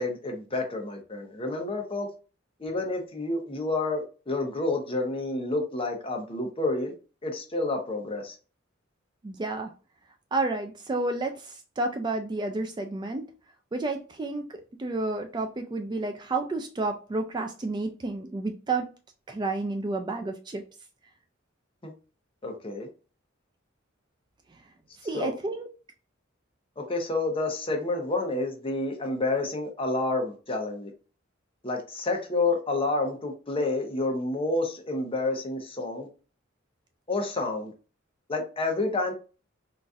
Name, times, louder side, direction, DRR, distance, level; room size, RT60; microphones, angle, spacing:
voice 1, 0.0-2.1 2.6-6.9 7.2-8.3 21.8-21.9 22.4-22.9 25.1-25.3 26.8-30.9 31.6-36.1 37.1-37.7 38.3-39.1, left 2 dB, 30° left, 0.8 m, -29 dB
voice 2, 9.2-9.7 10.3-13.3 13.7-18.9 19.3-20.6 25.0-25.7, right 2 dB, 20° right, 0.3 m, -30 dB
3.9 x 2.5 x 2.4 m
head